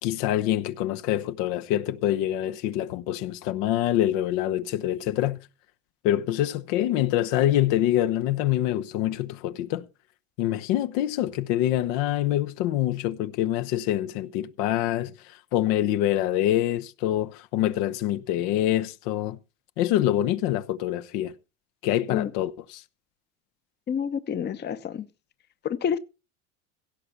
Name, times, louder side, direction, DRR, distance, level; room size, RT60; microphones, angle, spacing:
voice 1, 0.0-5.4 6.0-9.8 10.4-15.1 15.5-19.4 19.8-21.3 21.8-22.8, left 13 dB, 70° left, 1.1 m, -25 dB
voice 2, 23.9-25.1 25.6-26.0, left 8 dB, 25° left, 0.8 m, -28 dB
16.5 x 6.9 x 6.0 m
supercardioid pair, 120°, 39 cm